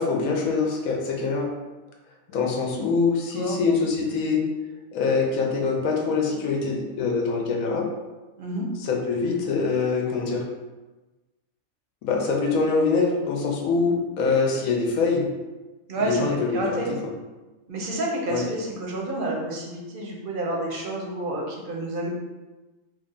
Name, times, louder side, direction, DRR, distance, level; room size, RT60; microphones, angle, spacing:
voice 1, 0.0-1.5 2.3-4.4 4.9-7.9 8.8-10.4 12.0-15.2 16.0-16.8 18.3-18.5, left 4 dB, 85° left, 0 dB, 1.1 m, -24 dB
voice 2, 8.4-8.7 15.9-16.9 17.7-22.1, right 1 dB, 50° right, -2 dB, 0.7 m, -29 dB
3.2 x 2.4 x 3.7 m, 1.1 s
omnidirectional pair, 1.4 m